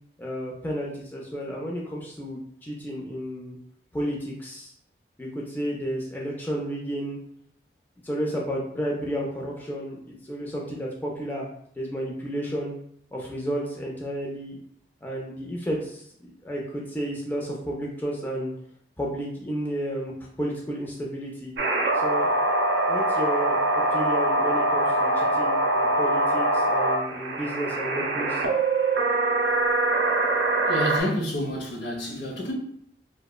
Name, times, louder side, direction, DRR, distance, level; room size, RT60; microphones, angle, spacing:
voice 1, 0.2-3.6 3.9-4.7 5.2-7.2 8.0-11.5 11.8-12.7 13.1-14.6 15.0-16.0 16.4-18.5 19.0-20.1 20.4-21.5 21.9-22.3 22.9-28.4, equal, 10° left, 0.3 m, -32 dB
sound 1, 21.6-31.0, right 2 dB, 75° right, 0.4 m, -23 dB
voice 2, 30.6-32.5, left 1 dB, 65° left, 0.6 m, -29 dB
2.9 x 2.1 x 2.2 m
head